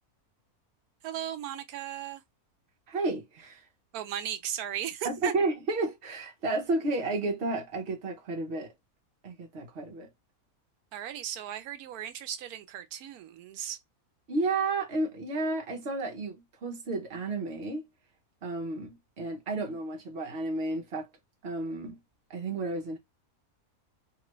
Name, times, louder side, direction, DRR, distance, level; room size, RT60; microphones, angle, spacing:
voice 1, 1.0-2.2 3.9-5.3 10.9-13.8, right 10 dB, 80° right, 1.0 m, -36 dB
voice 2, 2.9-3.6 5.0-8.7 9.2-10.1 14.3-17.8 18.4-21.1 21.4-22.0 22.3-23.0, right 2 dB, 50° right, 1.0 m, -32 dB
2.9 x 2.4 x 3.0 m
omnidirectional pair, 1.6 m